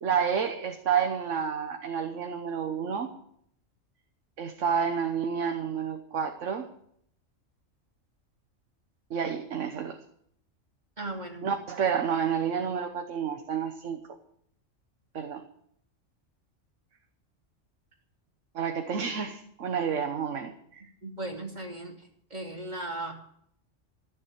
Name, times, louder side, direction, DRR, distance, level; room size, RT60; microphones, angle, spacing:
voice 1, 0.0-3.2 4.4-6.7 9.1-10.0 11.4-14.0 15.1-15.4 18.5-20.8, right 7 dB, 70° right, 5 dB, 1.4 m, -30 dB
voice 2, 11.0-11.4 21.0-21.9 22.3-23.1, right 2 dB, 35° right, 1 dB, 2.7 m, -36 dB
15.0 x 7.2 x 9.0 m, 0.69 s
omnidirectional pair, 1.3 m